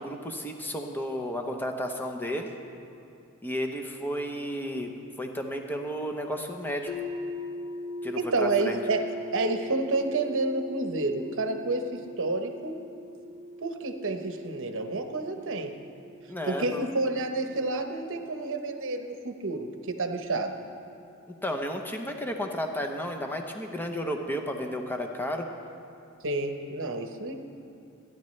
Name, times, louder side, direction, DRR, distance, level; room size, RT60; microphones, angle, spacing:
voice 1, 0.0-2.5 3.4-4.9 5.2-6.9 8.0-8.8 16.3-16.9 21.4-25.5, equal, 10° left, 3 dB, 0.8 m, -32 dB
sound 1, 6.9-18.8, left 1 dB, 45° left, 2.8 m, -41 dB
voice 2, 8.2-9.0 9.3-12.8 13.6-15.7 16.4-20.5 26.2-27.3, right 2 dB, 60° right, 5 dB, 1.0 m, -29 dB
29.0 x 10.5 x 3.2 m, 2.6 s
head